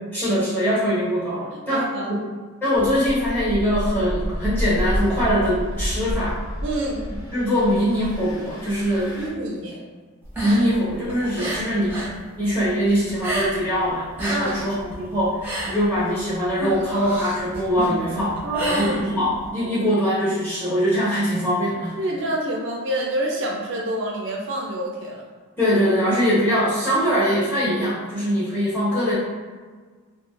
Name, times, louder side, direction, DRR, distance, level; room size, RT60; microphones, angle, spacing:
voice 1, 0.1-1.8 2.1-2.3 2.6-6.4 7.3-9.1 10.4-12.1 12.4-21.9 25.6-29.1, equal, 10° left, -11 dB, 1.2 m, -22 dB
voice 2, 1.5-2.3 6.6-7.0 9.2-9.8 11.4-11.5 14.3-14.6 18.4-19.1 22.0-25.3, right 1 dB, 60° right, -1 dB, 0.4 m, -27 dB
Engine, 2.7-9.3, equal, 65° left, 1.0 m, -29 dB
sound 1, 10.2-12.2 12.4-13.8 14.0-19.5, right 1 dB, 10° right, 0.7 m, -30 dB
3.1 x 2.3 x 2.4 m, 1.4 s
head